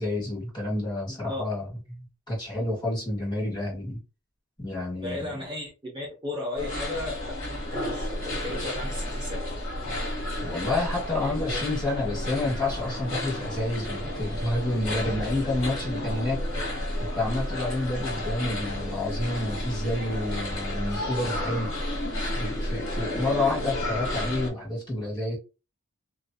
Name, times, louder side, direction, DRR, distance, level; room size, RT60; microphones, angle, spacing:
voice 1, 0.0-1.7 1.9-4.0 4.6-5.3 10.4-16.4 17.1-21.7 22.2-25.4, left 2 dB, 20° left, 1.4 m, -29 dB
voice 2, 1.1-1.5 5.0-7.4 7.8-9.5 11.2-11.7, left 2 dB, 20° right, 0.8 m, -35 dB
sound 1, 6.6-24.5, left 1 dB, 55° left, 1.5 m, -31 dB
2.6 x 2.5 x 2.3 m
head